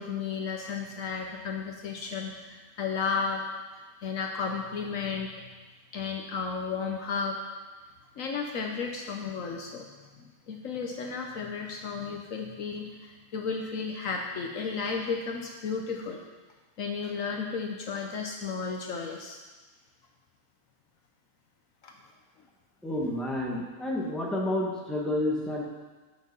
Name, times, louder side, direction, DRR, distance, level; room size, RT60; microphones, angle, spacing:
voice 1, 0.0-3.4 4.0-5.3 5.9-7.4 8.2-9.9 10.2-16.2 16.8-19.4 21.8-21.9, left 5 dB, 65° left, 2 dB, 1.1 m, -33 dB
voice 2, 22.8-25.6, left 1 dB, ahead, -3 dB, 1.2 m, -30 dB
8.3 x 6.1 x 5.4 m, 1.3 s
omnidirectional pair, 1.6 m